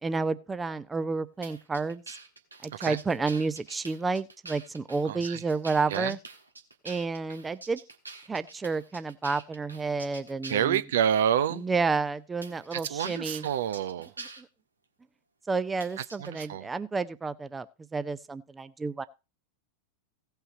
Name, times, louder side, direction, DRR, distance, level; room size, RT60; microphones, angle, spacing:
voice 1, 0.0-2.1 2.6-6.2 6.8-7.8 8.3-10.8 11.5-13.5 14.4-14.5 15.5-17.7 17.9-19.1, right 4 dB, 15° right, 0.6 m, -30 dB
sound 1, 1.4-10.7 11.4-11.6 12.4-14.4 15.8-16.4, right 3 dB, 80° right, 1.5 m, -45 dB
voice 2, 5.1-5.4 5.9-6.2 10.5-11.7 12.7-14.1 16.2-16.7, right 9 dB, 60° right, 0.6 m, -28 dB
17.0 x 5.7 x 4.0 m
figure-of-eight pair, 90°, 0 cm